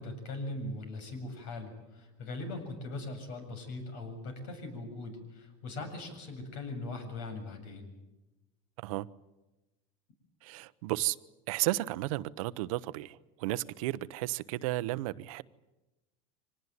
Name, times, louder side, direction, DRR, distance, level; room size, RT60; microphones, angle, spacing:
voice 1, 0.0-7.9, left 2 dB, 70° left, 7.6 m, -40 dB
voice 2, 10.4-11.2 11.5-15.4, right 17 dB, 80° right, 0.9 m, -33 dB
25.0 x 19.0 x 9.7 m
supercardioid pair, 130°, 17 cm